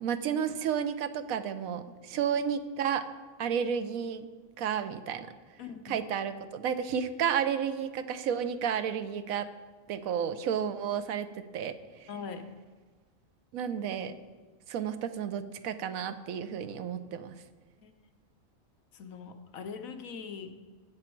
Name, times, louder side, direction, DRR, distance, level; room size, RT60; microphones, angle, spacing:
voice 1, 0.0-3.1 3.4-4.2 4.6-5.3 5.9-9.5 9.9-11.7 12.0-12.1 13.5-14.1 14.7-17.3, right 8 dB, 85° right, 11 dB, 1.1 m, -32 dB
voice 2, 5.6-6.0 12.1-12.4 17.8-17.9 18.9-20.5, left 6 dB, 80° left, 6 dB, 1.3 m, -41 dB
16.5 x 6.2 x 4.5 m, 1.4 s
omnidirectional pair, 1.4 m